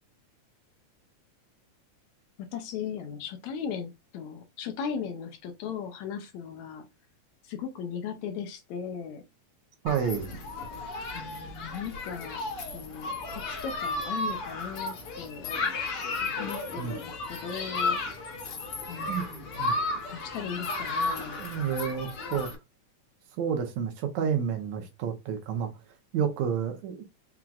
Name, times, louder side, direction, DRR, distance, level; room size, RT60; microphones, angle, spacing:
voice 1, 2.4-6.9 7.4-9.2 11.1-12.4 12.7-15.5 16.4-18.0 18.9-19.6 20.1-21.4, left 7 dB, 75° left, 1.8 m, -37 dB
voice 2, 9.8-10.3 16.8-17.0 19.1-19.3 19.6-19.7 21.4-22.5 23.4-25.7 26.1-27.0, right 7 dB, 75° right, 2.0 m, -30 dB
Human group actions, 9.9-22.5, left 3 dB, 55° left, 2.1 m, -33 dB
5.8 x 3.7 x 2.4 m
omnidirectional pair, 3.5 m